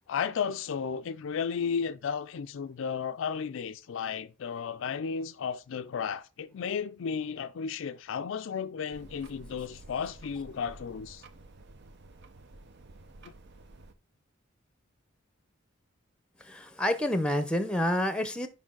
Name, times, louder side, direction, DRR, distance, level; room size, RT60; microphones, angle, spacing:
voice 1, 0.1-11.2 13.2-13.3, left 6 dB, 65° left, 0.4 m, -34 dB
sound 1, 8.9-13.9, right 2 dB, 60° right, 0.7 m, -51 dB
voice 2, 16.4-18.5, left 1 dB, 5° left, 0.8 m, -28 dB
6.3 x 5.3 x 3.8 m
head